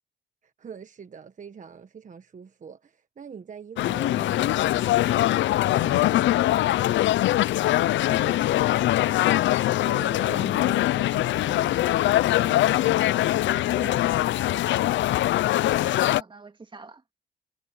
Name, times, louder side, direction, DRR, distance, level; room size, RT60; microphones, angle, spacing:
voice 1, 0.4-6.8 9.8-15.0, right 6 dB, 40° right, 1.3 m, -43 dB
sound 1, 3.8-16.2, left 14 dB, 70° left, 0.5 m, -22 dB
voice 2, 7.8-8.9 15.8-17.0, right 4 dB, 25° right, 2.0 m, -45 dB
cardioid pair, 90°, 20 cm